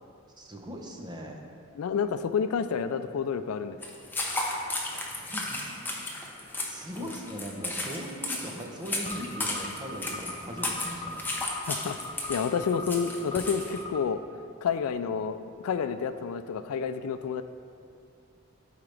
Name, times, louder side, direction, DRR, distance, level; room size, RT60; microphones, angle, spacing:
voice 1, 0.4-1.4 5.3-5.6 6.0-6.2 6.6-11.3, equal, 20° right, 1 dB, 0.8 m, -39 dB
voice 2, 1.8-3.8 7.0-7.1 11.7-12.0 12.3-14.2 14.6-15.4 15.6-17.4, left 6 dB, 80° left, 11 dB, 0.3 m, -29 dB
sound 1, 3.8-13.8, left 2 dB, 10° left, 0.8 m, -34 dB
sound 2, 9.1-14.0, left 2 dB, 30° left, 0.5 m, -41 dB
12.0 x 4.8 x 3.4 m, 2.5 s
head